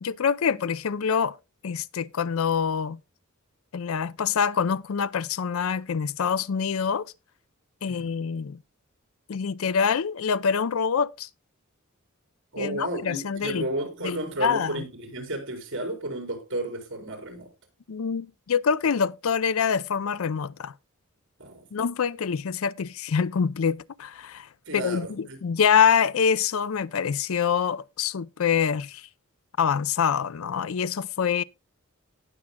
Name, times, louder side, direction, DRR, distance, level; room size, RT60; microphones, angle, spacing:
voice 1, 0.0-1.4 1.6-3.0 3.7-7.1 7.8-8.6 9.3-11.3 12.6-13.7 14.0-14.8 17.9-20.7 21.7-29.1 29.6-31.4, left 6 dB, 70° left, 0.5 m, -25 dB
voice 2, 12.5-17.5 21.4-21.6 24.7-25.4, right 1 dB, 60° right, 4.6 m, -32 dB
18.0 x 7.3 x 2.2 m
head